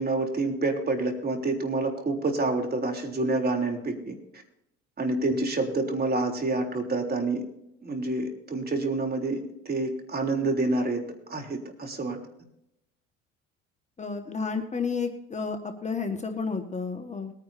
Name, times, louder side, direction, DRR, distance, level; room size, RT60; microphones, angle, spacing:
voice 1, 0.0-4.2 5.0-7.4 7.8-11.0 11.3-12.2, right 2 dB, 30° right, 3 dB, 3.6 m, -28 dB
voice 2, 14.0-17.3, left 5 dB, 25° left, 6 dB, 1.8 m, -31 dB
22.0 x 9.8 x 2.8 m, 0.81 s
hypercardioid pair, 75°, 30 cm